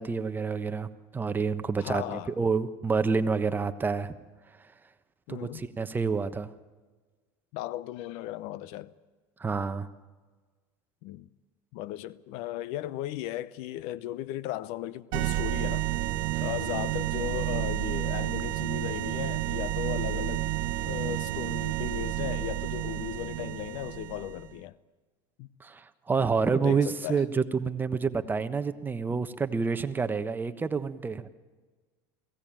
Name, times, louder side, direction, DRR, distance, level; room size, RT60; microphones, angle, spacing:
voice 1, 0.0-4.1 5.3-6.5 9.4-9.9 25.6-31.3, right 5 dB, 15° right, 1.2 m, -28 dB
voice 2, 1.8-2.3 5.3-5.7 7.5-8.9 11.0-11.3 11.7-15.9 16.4-20.5 20.8-24.7 25.4-25.5 26.5-27.2, left 14 dB, 65° left, 0.9 m, -36 dB
sound 1, 15.1-24.5, right 15 dB, 70° right, 0.9 m, -31 dB
22.5 x 16.5 x 9.0 m
supercardioid pair, 110°, 11 cm